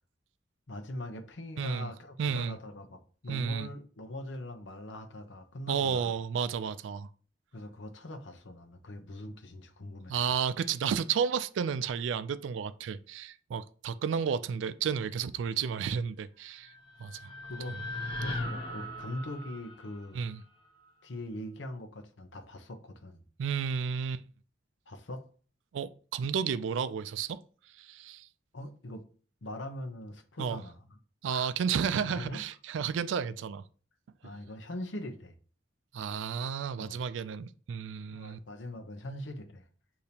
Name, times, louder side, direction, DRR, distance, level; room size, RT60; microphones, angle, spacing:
voice 1, 0.7-6.1 7.5-10.3 17.4-17.8 18.2-20.2 21.0-23.2 24.9-25.2 28.5-29.0 29.4-30.8 31.3-31.5 32.0-32.4 34.2-35.4 36.7-37.0 38.1-39.7, left 1 dB, 85° left, 0.8 m, -42 dB
voice 2, 1.6-1.9 2.2-2.6 3.3-3.7 5.7-7.1 10.1-16.7 17.0-17.3 20.1-20.4 23.4-24.2 25.7-27.4 27.7-28.3 30.4-30.6 31.2-33.6 35.9-38.4, right 7 dB, 90° right, 0.3 m, -32 dB
sound 1, 16.5-20.8, left 1 dB, 30° left, 1.0 m, -39 dB
6.7 x 2.8 x 2.8 m
head